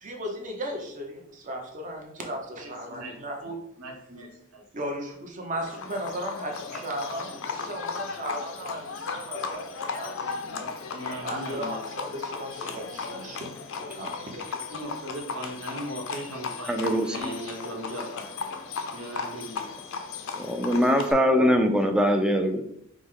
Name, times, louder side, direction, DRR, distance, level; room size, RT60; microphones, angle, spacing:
voice 1, 0.0-3.6 4.7-10.1 10.4-10.7 11.2-14.4, right 1 dB, 40° right, 0.7 m, -36 dB
voice 2, 2.6-4.6 10.9-11.8 14.3-18.3 18.9-19.7, right 1 dB, 85° right, 1.1 m, -39 dB
Livestock farm animals working animals, 5.6-21.1, left 5 dB, 65° left, 0.5 m, -36 dB
voice 3, 16.7-17.1 20.3-22.7, equal, 5° right, 0.3 m, -22 dB
4.9 x 2.1 x 3.6 m
head